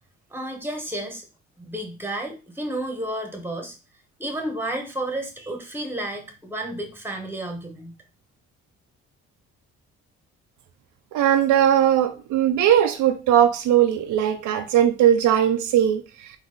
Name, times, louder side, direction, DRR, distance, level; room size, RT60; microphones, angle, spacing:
voice 1, 0.3-1.2 1.6-3.8 4.2-7.9, right 1 dB, 5° right, 1.2 m, -31 dB
voice 2, 11.1-16.0, right 10 dB, 80° right, 0.6 m, -19 dB
4.0 x 2.9 x 3.8 m
cardioid pair, 90°, 30 cm